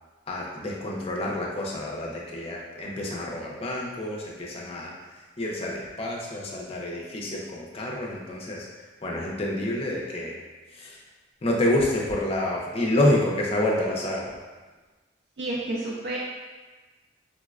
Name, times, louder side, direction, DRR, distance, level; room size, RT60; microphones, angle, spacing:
voice 1, 0.3-4.9 5.4-8.7 9.0-10.4 10.7-11.0 11.4-14.4, left 1 dB, 35° left, -3 dB, 0.5 m, -28 dB
voice 2, 15.4-16.2, right 2 dB, 65° right, -4 dB, 0.4 m, -30 dB
3.9 x 2.1 x 2.4 m, 1.3 s
head